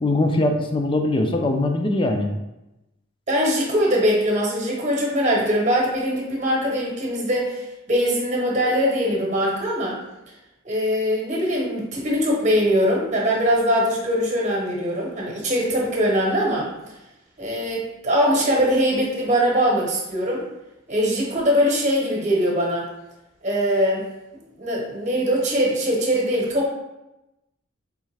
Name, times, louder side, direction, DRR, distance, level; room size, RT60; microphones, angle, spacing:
voice 1, 0.0-2.3, left 2 dB, 25° left, 4 dB, 0.4 m, -21 dB
voice 2, 3.3-10.0 10.6-16.7 17.4-20.4 20.9-22.9 23.4-24.0 24.6-26.7, equal, 35° right, -2 dB, 0.9 m, -22 dB
3.6 x 3.1 x 3.2 m, 0.94 s
head